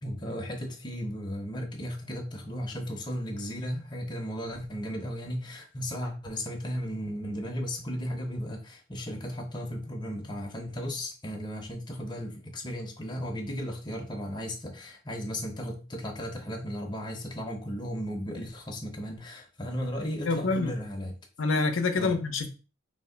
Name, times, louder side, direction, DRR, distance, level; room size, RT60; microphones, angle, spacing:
voice 1, 0.0-21.1 22.0-22.2, equal, 20° left, 1 dB, 0.7 m, -35 dB
voice 2, 20.3-20.7 21.4-22.5, left 3 dB, 75° left, 6 dB, 0.6 m, -26 dB
3.0 x 2.8 x 4.4 m, 0.34 s
head